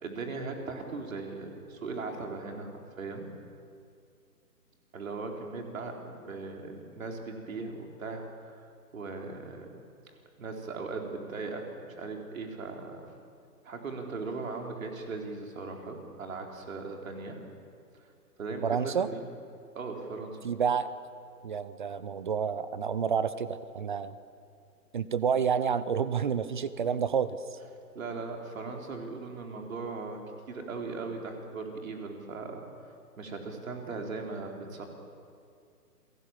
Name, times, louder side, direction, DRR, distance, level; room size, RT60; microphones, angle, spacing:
voice 1, 0.0-3.3 4.9-8.7 8.9-9.7 10.1-13.1 13.6-17.4 17.9-18.1 18.4-19.3 19.7-20.4 27.9-30.2 30.5-32.6 33.2-34.8, right 3 dB, 55° right, 2 dB, 4.2 m, -38 dB
voice 2, 18.6-19.1 20.4-20.9 21.4-24.2 24.9-27.6, right 7 dB, 30° right, 15 dB, 0.7 m, -29 dB
28.5 x 18.0 x 7.5 m, 2.4 s
figure-of-eight pair, 145°, 48 cm